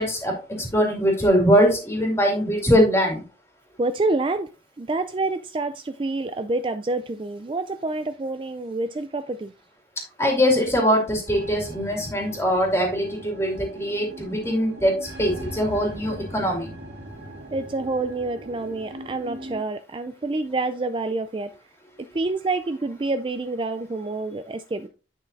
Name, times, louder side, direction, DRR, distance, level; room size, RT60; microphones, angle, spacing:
voice 1, 0.0-3.2 10.2-16.7, equal, 15° left, 2.3 m, -22 dB
voice 2, 3.8-4.5 4.8-9.5 17.5-21.5 22.1-24.9, right 2 dB, 30° right, 0.3 m, -27 dB
sound 1, 11.3-19.6, right 1 dB, 75° right, 1.6 m, -40 dB
9.9 x 5.6 x 2.6 m
head